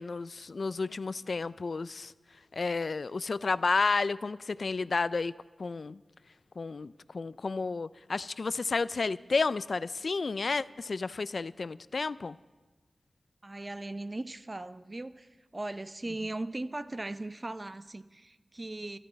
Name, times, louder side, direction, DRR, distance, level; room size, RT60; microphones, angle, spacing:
voice 1, 0.0-2.1 2.5-5.3 5.6-6.0 6.6-12.4, left 4 dB, 65° left, 17 dB, 0.3 m, -31 dB
voice 2, 13.4-19.0, right 2 dB, 35° right, 12 dB, 0.6 m, -38 dB
13.0 x 9.2 x 8.8 m, 1.3 s
cardioid pair, 50°, 0 cm